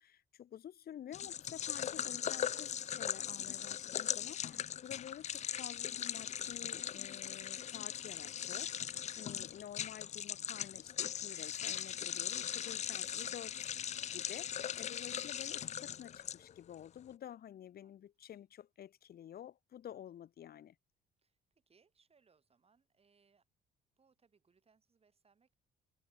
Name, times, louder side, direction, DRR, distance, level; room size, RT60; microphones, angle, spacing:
voice 1, 0.0-13.8 14.1-20.8, left 10 dB, 60° left, 1.7 m, -51 dB
sound 1, 1.1-16.7, left 9 dB, 40° left, 0.4 m, -40 dB
voice 2, 21.2-23.5 24.0-25.5, right 5 dB, 35° right, 3.7 m, -73 dB
supercardioid pair, 75°, 18 cm